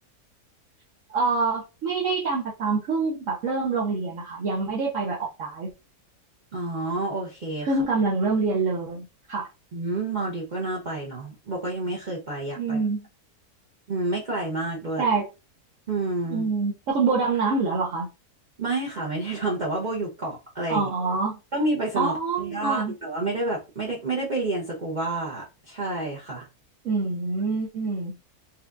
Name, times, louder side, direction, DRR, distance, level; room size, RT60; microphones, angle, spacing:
voice 1, 1.1-5.7 7.6-9.5 12.6-13.0 15.0-15.3 16.3-18.1 20.7-21.4 22.0-22.9 26.8-28.1, right 4 dB, 60° right, 1.1 m, -26 dB
voice 2, 6.5-7.7 9.7-12.8 13.9-15.1 15.9-16.5 18.6-20.9 21.5-26.5, right 2 dB, 40° right, 0.7 m, -29 dB
4.3 x 2.3 x 2.5 m
omnidirectional pair, 1.6 m